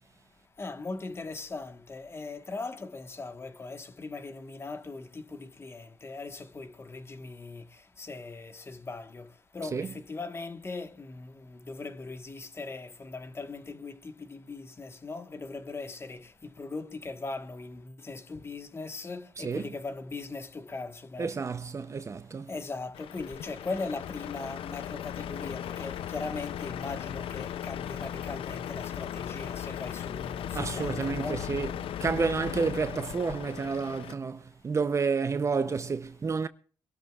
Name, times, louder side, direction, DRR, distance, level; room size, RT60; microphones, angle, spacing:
voice 1, 0.6-21.3 22.5-31.5, left 3 dB, 25° left, 1.4 m, -39 dB
voice 2, 21.2-22.5 30.5-31.7 32.0-36.5, right 5 dB, 30° right, 0.7 m, -30 dB
Truck, 22.9-34.1, left 10 dB, 75° left, 0.5 m, -37 dB
25.5 x 13.0 x 2.4 m
cardioid pair, 110°, 9 cm